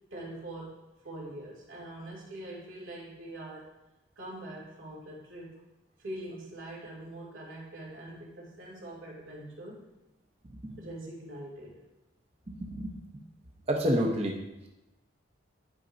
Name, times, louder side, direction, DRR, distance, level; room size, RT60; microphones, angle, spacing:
voice 1, 0.1-0.8 1.0-3.7 4.2-5.6 6.0-9.9 10.8-11.8, right 1 dB, 75° right, -5 dB, 2.6 m, -43 dB
voice 2, 12.5-13.0 13.7-14.4, equal, 30° right, -1 dB, 0.7 m, -29 dB
10.5 x 5.1 x 2.6 m, 1.0 s
head